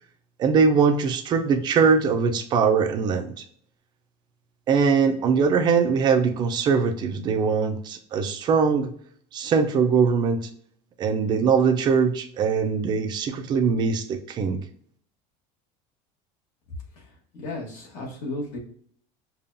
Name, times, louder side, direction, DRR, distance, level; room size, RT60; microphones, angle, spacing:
voice 1, 0.4-3.4 4.7-8.9 9.3-10.5 11.0-14.6, right 5 dB, 25° right, 6 dB, 0.4 m, -22 dB
voice 2, 17.0-18.6, left 2 dB, 50° left, -1 dB, 1.4 m, -35 dB
5.2 x 2.3 x 2.6 m, 0.62 s
cardioid pair, 170°, 18 cm